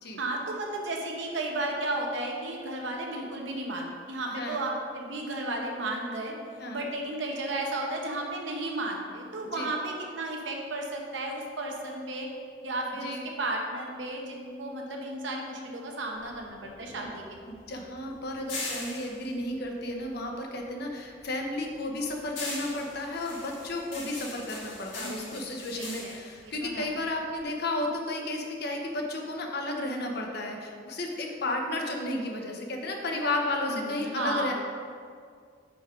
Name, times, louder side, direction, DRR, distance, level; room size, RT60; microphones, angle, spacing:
voice 1, 0.2-6.3 6.7-12.3 12.6-17.2 25.0-25.5 25.8-26.9 33.7-34.5, right 2 dB, 85° right, 1 dB, 1.0 m, -34 dB
sound 1, 16.1-20.6 21.0-27.4, left 2 dB, 80° left, 1.6 m, -41 dB
voice 2, 17.5-34.5, left 2 dB, 60° left, 2 dB, 0.8 m, -33 dB
5.0 x 4.9 x 5.0 m, 2.1 s
head